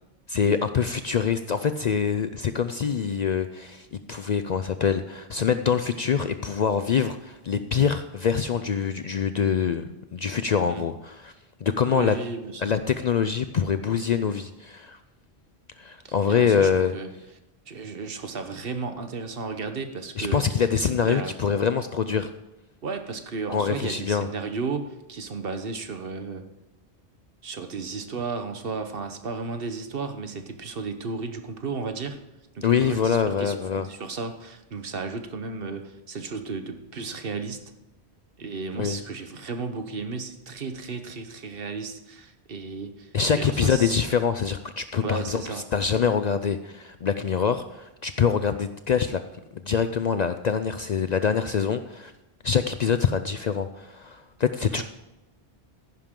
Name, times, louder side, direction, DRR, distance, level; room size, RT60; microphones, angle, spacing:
voice 1, 0.3-11.3 11.6-12.2 12.6-15.0 15.8-16.9 20.2-22.3 23.5-24.3 32.6-33.9 38.8-39.0 43.1-49.2 49.5-52.1 52.4-54.8, left 6 dB, 55° left, 10 dB, 0.5 m, -25 dB
voice 2, 11.9-12.6 16.0-17.1 17.7-20.4 21.0-21.4 22.8-26.4 27.4-32.2 32.5-33.6 33.8-37.6 38.4-44.0 45.0-45.6 54.7-54.8, right 4 dB, 60° right, 7 dB, 1.2 m, -34 dB
14.5 x 10.5 x 3.7 m, 0.99 s
omnidirectional pair, 1.1 m